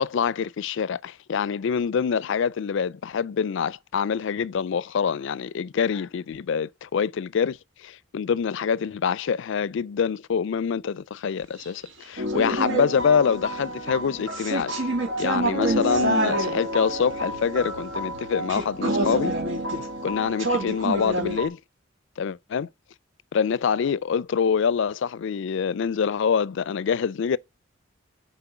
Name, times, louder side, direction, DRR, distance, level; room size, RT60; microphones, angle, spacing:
voice 1, 0.0-14.8 15.2-19.3 20.0-21.6 22.2-22.7 23.3-27.4, left 6 dB, 65° left, 0.4 m, -25 dB
sound 1, 12.2-21.5, right 1 dB, 75° right, 2.4 m, -27 dB
6.8 x 4.4 x 6.0 m
head